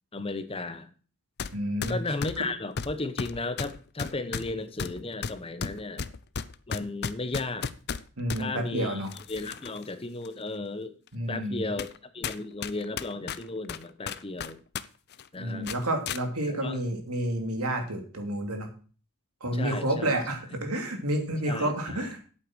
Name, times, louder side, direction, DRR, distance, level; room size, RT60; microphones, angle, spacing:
voice 1, 0.1-0.9 1.9-6.1 6.7-7.7 8.4-9.0 9.3-11.0 11.3-14.6 15.3-15.7 16.5-16.8 19.5-20.1 21.5-22.1, left 2 dB, 25° left, 11 dB, 0.9 m, -35 dB
sound 1, 1.4-1.5 1.8-8.4 9.1-9.8 10.3-10.4 11.1-11.2 11.8-12.0 12.2-14.9 15.1-15.3 15.7-16.2, left 6 dB, 50° left, 0.6 m, -34 dB
voice 2, 1.5-2.0 8.2-9.1 11.1-11.7 15.4-18.7 19.4-22.2, right 1 dB, 85° right, 4 dB, 2.8 m, -30 dB
8.5 x 8.4 x 6.2 m, 0.40 s
head